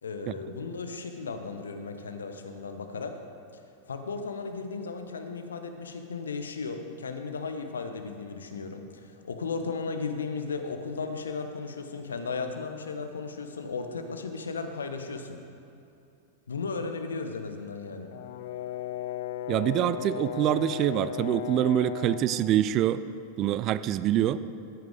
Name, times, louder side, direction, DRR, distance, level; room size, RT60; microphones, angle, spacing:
voice 1, 0.0-3.2 3.9-15.4 16.5-18.1, left 4 dB, 70° left, 6 dB, 0.9 m, -35 dB
Brass instrument, 18.1-22.3, left 10 dB, 55° left, 0.4 m, -36 dB
voice 2, 19.5-23.0 23.4-24.4, right 12 dB, 35° right, 14 dB, 0.3 m, -25 dB
14.0 x 9.2 x 3.6 m, 2.6 s
figure-of-eight pair, 90°, 0 cm